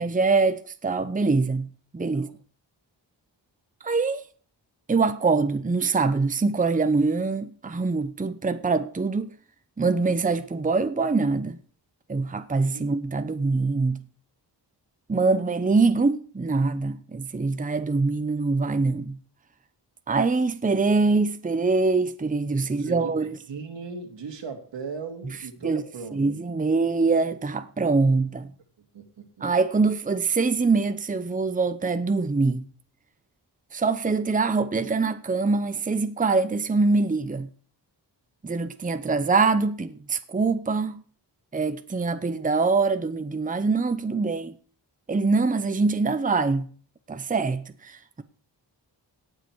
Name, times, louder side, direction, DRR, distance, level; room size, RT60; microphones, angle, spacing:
voice 1, 0.0-2.3 3.8-4.2 4.9-9.3 9.8-11.6 12.1-14.0 15.1-19.2 20.1-23.3 25.6-25.8 26.1-28.5 29.4-32.7 33.7-37.5 38.4-41.0 41.5-44.6 45.1-46.7 47.1-48.2, right 4 dB, 20° right, 0.8 m, -24 dB
voice 2, 22.6-26.4 28.9-29.5, right 5 dB, 85° right, 2.3 m, -38 dB
17.5 x 6.7 x 4.7 m
wide cardioid pair, 85°, 43 cm